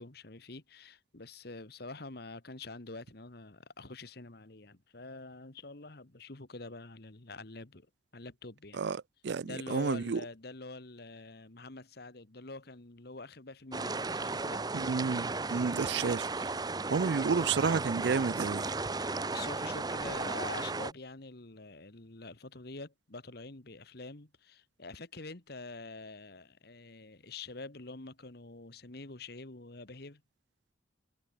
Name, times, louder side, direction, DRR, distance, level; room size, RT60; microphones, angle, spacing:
voice 1, 0.0-7.9 8.1-8.8 9.4-14.6 15.7-16.1 19.0-30.2, left 3 dB, 55° left, 1.6 m, -46 dB
voice 2, 8.7-10.2 14.7-16.5 16.9-18.8, right 5 dB, 60° right, 0.4 m, -31 dB
sound 1, 13.7-20.9, right 3 dB, 20° right, 0.8 m, -35 dB
head